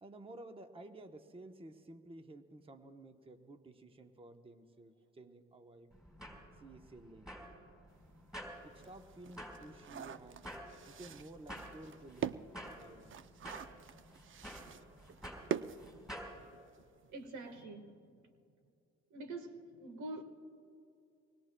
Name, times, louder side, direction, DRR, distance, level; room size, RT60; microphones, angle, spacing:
voice 1, 0.0-5.9 6.5-7.4 8.6-10.6 10.9-13.4, right 2 dB, 20° right, 0.9 m, -53 dB
sound 1, 5.9-16.4, equal, ahead, 4.3 m, -51 dB
sound 2, 8.0-8.1 8.5-16.6 16.9-17.0 17.3-17.5, right 8 dB, 45° right, 0.5 m, -44 dB
voice 2, 17.0-18.2 19.1-20.2, right 2 dB, 75° right, 1.5 m, -46 dB
25.0 x 20.0 x 2.2 m
cardioid pair, 90°, 30 cm